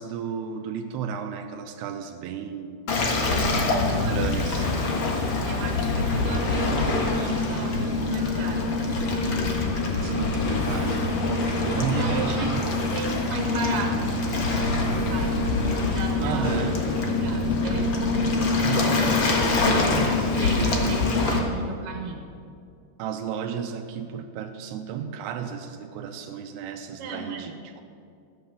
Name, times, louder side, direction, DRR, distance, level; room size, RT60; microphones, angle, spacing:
voice 1, 0.0-2.9 4.1-4.7 10.0-12.7 16.2-16.8 18.6-21.0 23.0-27.8, right 7 dB, 85° right, 4 dB, 2.8 m, -33 dB
Waves surf, 2.9-21.4, left 3 dB, 80° left, 1.1 m, -24 dB
voice 2, 3.2-4.3 5.4-8.8 11.6-14.2 14.8-15.5 15.8-16.7 17.0-17.9 19.8-22.3 27.0-27.6, right 3 dB, 65° right, 2 dB, 2.5 m, -35 dB
15.0 x 10.5 x 7.0 m, 2.4 s
omnidirectional pair, 4.8 m